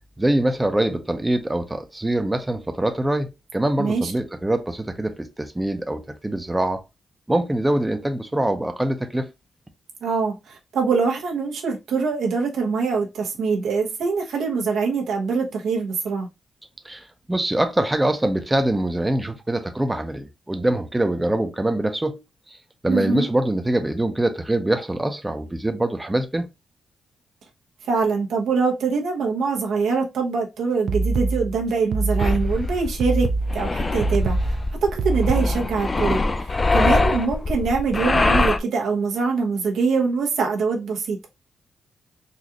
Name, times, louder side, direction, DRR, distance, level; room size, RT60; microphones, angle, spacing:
voice 1, 0.2-6.8 7.3-9.3 16.8-22.2 22.8-26.5, right 1 dB, 15° right, 0.6 m, -24 dB
voice 2, 3.8-4.1 10.0-16.3 22.9-23.3 27.9-34.5 34.8-41.3, right 4 dB, 85° right, 1.0 m, -24 dB
sound 1, 30.9-35.9, right 3 dB, 65° right, 0.4 m, -25 dB
sound 2, 32.2-38.6, left 3 dB, 30° left, 0.3 m, -23 dB
4.0 x 2.5 x 2.9 m
cardioid pair, 85°, 0 cm